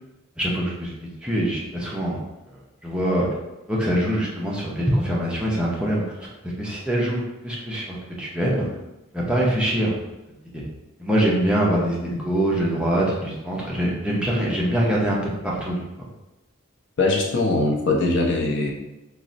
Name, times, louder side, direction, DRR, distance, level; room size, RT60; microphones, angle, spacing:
voice 1, 0.4-2.2 2.8-3.3 3.7-8.7 9.1-10.0 10.5-10.6 11.0-16.1, right 1 dB, 5° right, -5 dB, 0.4 m, -24 dB
voice 2, 17.0-18.7, left 2 dB, 55° left, 0 dB, 0.5 m, -21 dB
4.0 x 2.0 x 2.5 m, 1.0 s
head